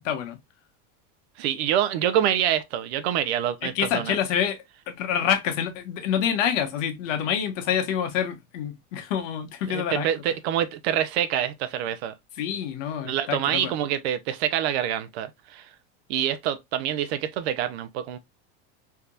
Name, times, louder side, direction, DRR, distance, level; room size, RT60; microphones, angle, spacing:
voice 1, 0.0-0.4 3.6-4.6 4.9-10.1 12.4-13.7, left 9 dB, 80° left, 1.0 m, -27 dB
voice 2, 1.4-4.2 9.7-12.1 13.0-15.7 16.1-18.2, right 10 dB, 55° right, 0.6 m, -26 dB
3.4 x 2.8 x 2.3 m
supercardioid pair, 170°, 38 cm